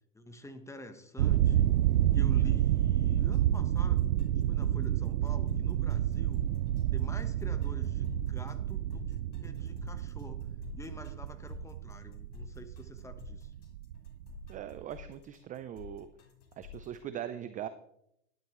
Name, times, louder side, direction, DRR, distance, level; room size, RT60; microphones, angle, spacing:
voice 1, 0.1-1.7 2.1-4.1 4.5-6.4 6.9-10.5 10.7-13.5, left 1 dB, 5° left, 9 dB, 1.1 m, -48 dB
sound 1, 1.2-14.8, right 12 dB, 85° right, 0.6 m, -29 dB
sound 2, 3.3-17.0, left 7 dB, 60° left, 3.7 m, -48 dB
voice 2, 14.5-16.1 16.6-17.7, right 10 dB, 20° right, 12 dB, 0.5 m, -40 dB
12.0 x 11.5 x 3.1 m, 0.76 s
hypercardioid pair, 105°, 42 cm